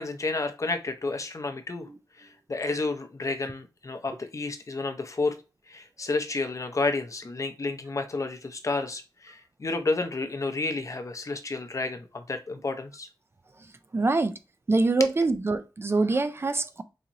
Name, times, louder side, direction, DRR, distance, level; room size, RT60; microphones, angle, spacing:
voice 1, 0.0-1.9 2.2-5.4 5.7-13.1, left 3 dB, 40° left, 0.6 m, -31 dB
voice 2, 13.9-14.4 14.7-16.8, right 3 dB, 30° right, 0.3 m, -24 dB
4.1 x 2.9 x 2.5 m
wide cardioid pair, 100°, 8 cm